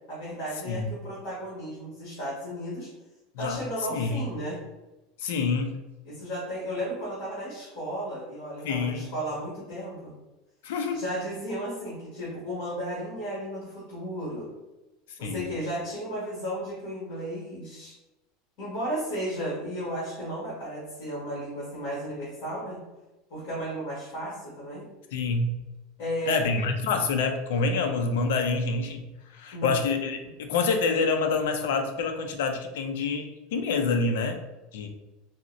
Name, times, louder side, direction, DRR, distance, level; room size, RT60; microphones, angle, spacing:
voice 1, 0.1-2.9 3.4-4.6 6.0-10.1 10.9-14.5 15.2-17.9 18.6-22.8 23.3-24.8 26.0-26.5 29.5-29.7, equal, 45° left, -9 dB, 1.5 m, -34 dB
voice 2, 3.9-4.3 5.2-5.8 8.6-9.1 10.6-11.0 15.2-15.5 25.1-25.6 26.3-29.0 29.3-34.4 34.7-34.9, left 4 dB, 80° left, 5 dB, 0.4 m, -27 dB
3.8 x 2.0 x 2.6 m, 1.0 s
supercardioid pair, 180°, 0 cm